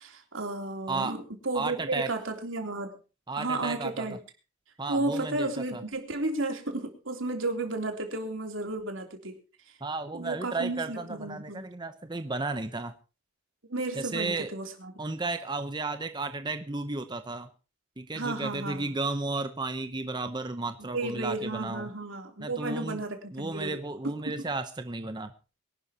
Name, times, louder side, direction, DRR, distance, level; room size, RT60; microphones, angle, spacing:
voice 1, 0.0-2.9 3.4-4.2 4.9-9.4 10.1-11.7 13.7-14.9 18.1-18.9 20.9-23.8 24.0-24.4, right 2 dB, 85° right, 3 dB, 3.3 m, -33 dB
voice 2, 1.5-2.1 3.3-4.1 4.8-5.8 9.8-12.9 13.9-14.5 15.0-17.5 18.0-21.9 22.4-23.0 23.3-25.3, right 3 dB, 20° right, 8 dB, 0.8 m, -33 dB
23.5 x 12.0 x 2.9 m, 0.33 s
head